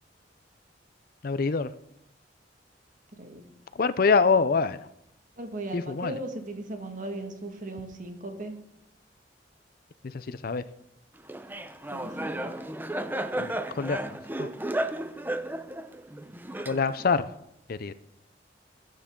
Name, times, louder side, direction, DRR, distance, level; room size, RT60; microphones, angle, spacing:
voice 1, 1.2-1.7 3.8-4.9 5.7-6.2 10.0-10.6 13.4-14.5 16.7-17.3 17.7-17.9, left 4 dB, 55° left, 14 dB, 0.5 m, -25 dB
voice 2, 5.4-8.5 11.9-12.5, right 1 dB, 45° right, 5 dB, 1.8 m, -37 dB
Laughter, 11.3-17.2, right 1 dB, 10° right, 0.6 m, -33 dB
20.5 x 9.7 x 3.8 m, 0.80 s
head